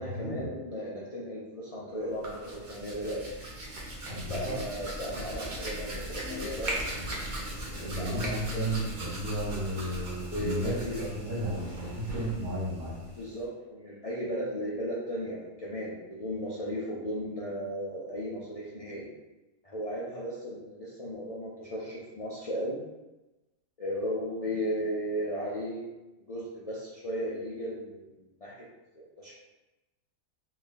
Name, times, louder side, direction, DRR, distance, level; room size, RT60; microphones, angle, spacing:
voice 1, 0.0-3.3 4.3-6.8 7.9-8.8 10.3-11.0 13.2-19.1 19.6-22.8 23.8-25.9 26.3-28.6 28.9-29.3, equal, 55° left, -6 dB, 0.4 m, -35 dB
Hands, 2.0-13.4, right 1 dB, 45° right, 0.7 m, -39 dB
voice 2, 4.1-4.6 5.1-5.2 7.0-7.2 7.7-13.0, right 1 dB, 80° right, -6 dB, 1.6 m, -34 dB
sound 1, 6.2-7.3, left 7 dB, 75° left, 1.0 m, -43 dB
3.6 x 2.3 x 3.9 m, 1.1 s
omnidirectional pair, 1.5 m